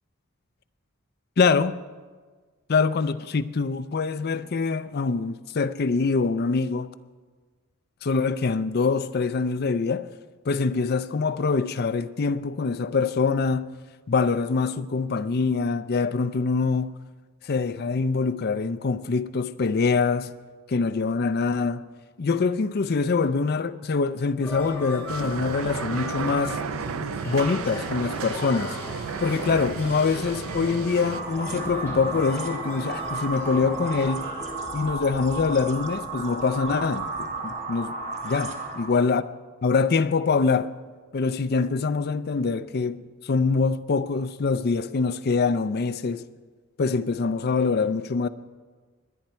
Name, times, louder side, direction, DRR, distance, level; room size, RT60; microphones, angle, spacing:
voice 1, 1.4-1.8 2.7-6.9 8.0-10.1 10.5-13.7 14.1-16.9 17.4-20.3 20.7-21.8 22.2-26.6 27.2-28.8 29.2-34.3 34.7-37.9 38.2-39.2 39.6-40.7 41.1-46.2 46.8-48.3, left 4 dB, 50° left, 0.5 m, -24 dB
sound 1, 24.4-34.5, left 1 dB, 10° left, 3.6 m, -37 dB
sound 2, 25.1-31.2, right 6 dB, 75° right, 0.4 m, -33 dB
sound 3, 31.0-39.0, right 3 dB, 35° right, 1.2 m, -33 dB
21.0 x 9.2 x 4.4 m
head